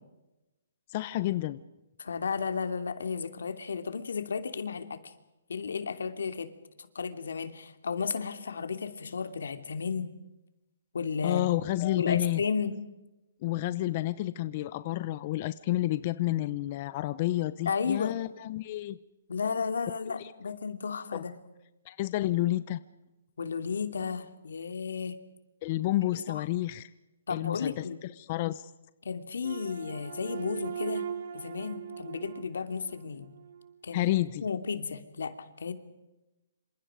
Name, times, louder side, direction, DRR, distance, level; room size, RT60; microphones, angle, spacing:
voice 1, 0.9-1.6 11.2-12.4 13.4-19.0 20.2-20.3 21.1-21.2 21.9-22.8 25.6-26.9 27.3-27.8 28.2-28.6 33.9-34.4, left 16 dB, 30° left, 14 dB, 0.7 m, -30 dB
voice 2, 2.0-5.1 5.5-6.5 6.8-10.1 10.9-11.5 12.0-12.7 17.6-18.1 19.3-21.4 23.4-25.2 26.1-26.4 27.3-28.0 29.0-31.1 31.3-33.3 33.8-34.1 34.4-35.7, left 5 dB, 85° left, 9 dB, 2.9 m, -33 dB
sound 1, 29.4-33.7, right 8 dB, 55° right, 3.3 m, -39 dB
27.5 x 26.5 x 5.1 m, 0.98 s
hypercardioid pair, 170°, 0 cm